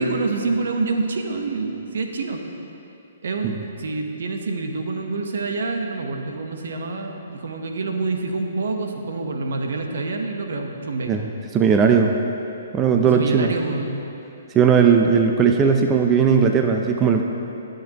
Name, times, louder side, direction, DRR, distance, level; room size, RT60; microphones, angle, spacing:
voice 1, 0.0-2.4 3.2-11.2 13.0-14.0, right 3 dB, 70° right, 4 dB, 1.0 m, -27 dB
voice 2, 11.5-12.1 12.7-13.5 14.5-17.2, right 6 dB, 20° right, 3 dB, 0.6 m, -17 dB
19.0 x 6.6 x 3.0 m, 2.8 s
hypercardioid pair, 130°, 0 cm